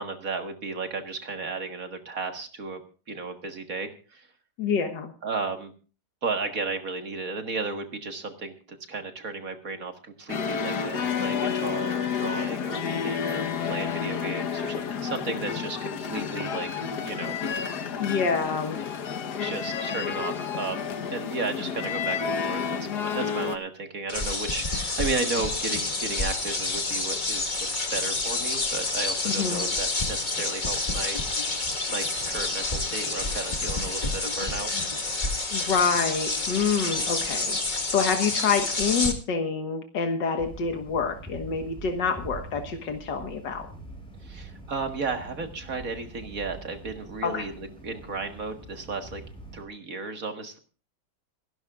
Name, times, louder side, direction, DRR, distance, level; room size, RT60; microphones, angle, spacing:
voice 1, 0.0-2.8 3.1-4.3 5.2-5.7 6.2-17.4 19.4-31.6 31.9-34.7 44.2-49.2 49.5-50.6, right 4 dB, 55° right, 6 dB, 2.0 m, -34 dB
voice 2, 4.6-5.1 18.0-18.8 29.3-29.7 35.5-43.7 47.2-47.4, left 5 dB, 85° left, 5 dB, 2.1 m, -27 dB
sound 1, 10.3-23.6, left 7 dB, 70° left, 1.7 m, -30 dB
sound 2, 24.1-39.1, left 3 dB, 25° left, 1.7 m, -28 dB
sound 3, 40.4-49.6, right 3 dB, 5° left, 5.1 m, -44 dB
27.0 x 11.5 x 2.4 m, 0.36 s
omnidirectional pair, 1.9 m